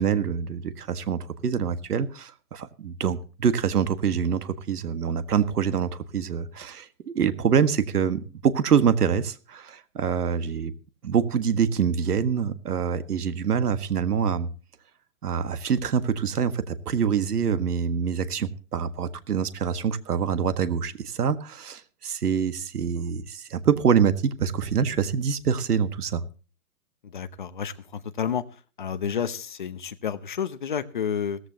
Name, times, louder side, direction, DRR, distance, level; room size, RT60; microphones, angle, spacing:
voice 1, 0.0-10.7 11.0-14.5 15.2-26.2, right 7 dB, 80° right, 1.7 m, -25 dB
voice 2, 27.0-28.4 28.8-31.4, left 7 dB, 35° left, 0.8 m, -30 dB
17.5 x 14.5 x 2.9 m
hypercardioid pair, 175°, 46 cm